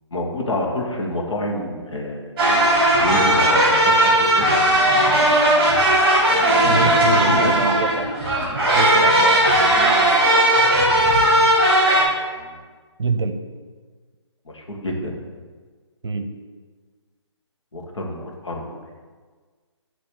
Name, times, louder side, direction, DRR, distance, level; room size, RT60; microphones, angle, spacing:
voice 1, 0.1-2.2 2.9-4.5 6.6-7.5 12.4-12.5 14.5-15.2 17.7-18.8, left 1 dB, 70° left, -1 dB, 1.6 m, -27 dB
sound 1, 2.4-12.0, right 1 dB, 20° right, 1.8 m, -17 dB
voice 2, 6.6-8.1 8.5-9.4 13.0-13.4 16.0-16.3, right 4 dB, 60° right, 8 dB, 0.7 m, -25 dB
8.9 x 3.2 x 6.5 m, 1.5 s
hypercardioid pair, 170°, 16 cm